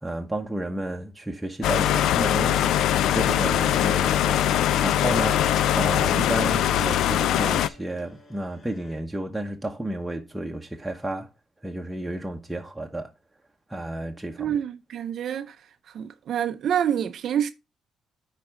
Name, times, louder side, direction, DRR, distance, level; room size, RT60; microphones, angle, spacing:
voice 1, 0.0-11.3 11.6-13.1 13.7-14.6, right 1 dB, 10° right, 0.9 m, -32 dB
sound 1, 1.6-7.7, left 11 dB, 80° left, 0.4 m, -22 dB
sound 2, 3.2-9.0, left 1 dB, 45° left, 2.5 m, -43 dB
voice 2, 14.4-15.6 15.9-17.5, right 9 dB, 65° right, 0.4 m, -27 dB
9.5 x 4.1 x 3.6 m
cardioid pair, 90°, 0 cm